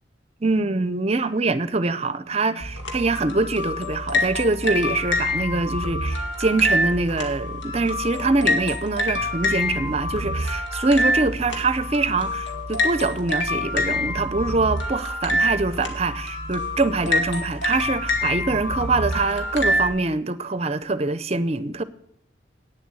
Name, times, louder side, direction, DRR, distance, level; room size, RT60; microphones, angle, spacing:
voice 1, 0.4-21.8, right 3 dB, 35° right, 0.6 m, -24 dB
sound 1, 2.6-19.9, left 1 dB, 80° left, 1.9 m, -26 dB
9.2 x 7.3 x 8.8 m
head